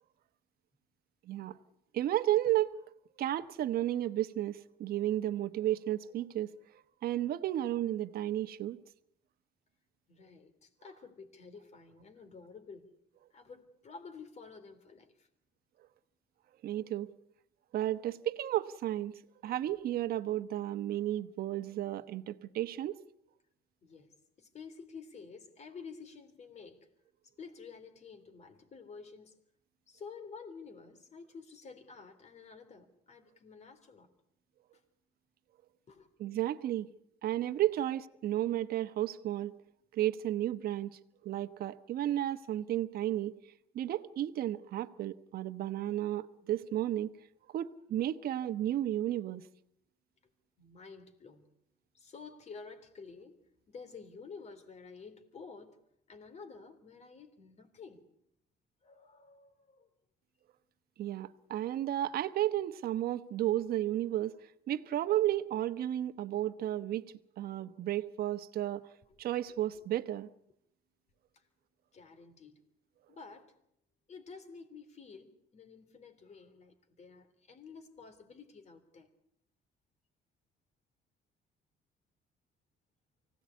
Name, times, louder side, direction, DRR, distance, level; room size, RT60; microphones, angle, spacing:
voice 1, 1.3-1.6 1.9-2.7 3.2-6.5 7.0-8.8 16.6-17.1 17.7-23.0 36.2-36.9 37.2-39.6 39.9-43.3 43.7-47.1 47.5-49.4 61.0-64.4 64.7-68.8 69.2-70.3, right 13 dB, 65° right, 1.1 m, -33 dB
voice 2, 10.1-12.9 13.3-15.3 23.8-26.9 27.4-29.4 29.9-34.1 34.7-34.8 35.9-36.1 50.6-51.4 51.9-53.4 53.7-55.8 56.1-58.0 58.8-59.9 63.4-63.5 69.5-69.9 71.3-71.4 71.9-72.6 73.1-73.5 74.1-79.1, left 5 dB, 40° left, 3.4 m, -51 dB
24.5 x 17.5 x 8.4 m
cardioid pair, 110°, 17 cm